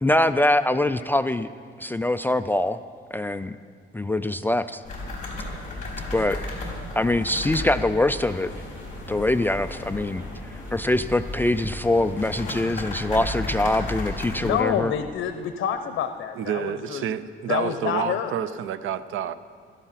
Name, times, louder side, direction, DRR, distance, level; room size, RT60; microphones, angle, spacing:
voice 1, 0.0-1.5 1.8-2.8 3.1-3.5 3.9-4.8 6.1-6.4 7.0-8.5 9.1-10.2 10.7-14.9, left 1 dB, 10° left, 10 dB, 0.3 m, -23 dB
sound 1, 4.8-14.6, left 2 dB, 35° left, 4.3 m, -34 dB
sound 2, 7.4-12.4, right 1 dB, 10° right, 1.3 m, -44 dB
voice 2, 14.4-17.1 17.5-18.3, left 9 dB, 75° left, 8 dB, 0.8 m, -27 dB
voice 3, 16.4-19.3, right 9 dB, 90° right, 14 dB, 0.7 m, -29 dB
16.5 x 13.5 x 5.8 m, 2.1 s
cardioid pair, 135°, 20 cm